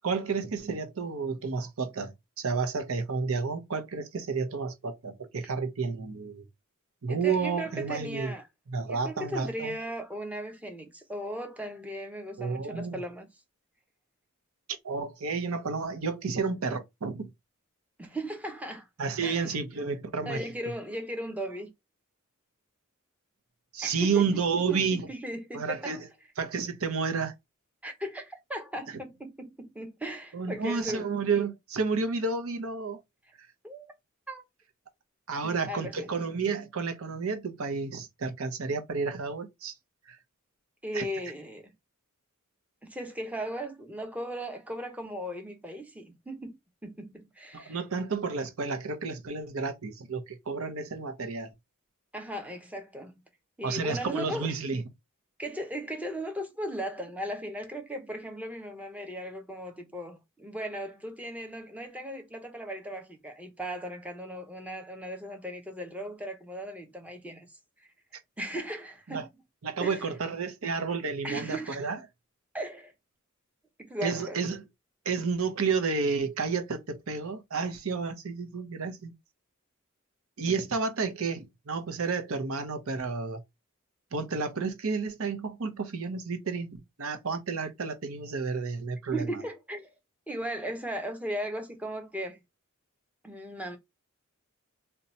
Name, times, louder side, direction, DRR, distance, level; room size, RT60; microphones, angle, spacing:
voice 1, 0.0-6.4 7.0-8.3 8.7-9.7 12.4-13.0 14.8-17.3 19.0-20.4 23.7-25.1 25.5-26.0 26.4-27.3 28.9-29.0 30.3-33.0 35.3-39.7 40.1-40.2 40.9-41.0 47.5-51.5 53.6-54.8 69.1-69.3 69.6-72.0 74.0-74.6 75.0-79.1 80.4-83.4 84.1-89.4, right 4 dB, 75° right, 0.7 m, -31 dB
voice 2, 7.1-8.4 8.8-13.3 18.0-18.9 19.2-19.5 20.2-21.7 23.8-24.3 24.7-26.0 27.8-31.1 33.6-33.9 34.3-34.4 35.4-36.1 40.8-41.7 42.8-46.6 46.8-47.8 52.1-53.2 53.6-54.5 55.4-67.5 67.8-67.9 68.4-69.3 69.8-70.1 71.2-71.8 72.5-72.9 73.9-74.4 89.1-89.9 90.3-92.4 93.2-93.8, right 1 dB, 5° right, 0.7 m, -37 dB
2.7 x 2.2 x 4.0 m
head